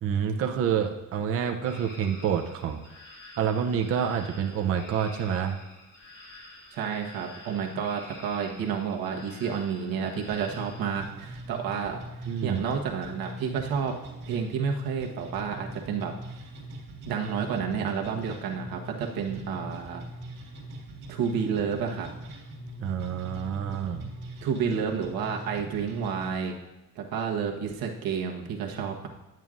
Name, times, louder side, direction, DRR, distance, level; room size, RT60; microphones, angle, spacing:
voice 1, 0.0-2.8 3.4-5.6 12.3-12.6 22.8-24.1, right 8 dB, 40° right, 3 dB, 0.6 m, -28 dB
sound 1, 1.6-10.9, left 2 dB, 30° left, 1.3 m, -49 dB
voice 2, 6.7-12.0 12.4-14.0 14.3-16.4 17.0-20.0 21.1-22.1 24.4-26.6 26.9-29.1, right 6 dB, 90° right, 1 dB, 1.2 m, -30 dB
sound 2, 10.3-26.3, right 1 dB, 65° right, 1.7 m, -42 dB
10.5 x 9.0 x 2.5 m, 0.99 s
cardioid pair, 165°, 35 cm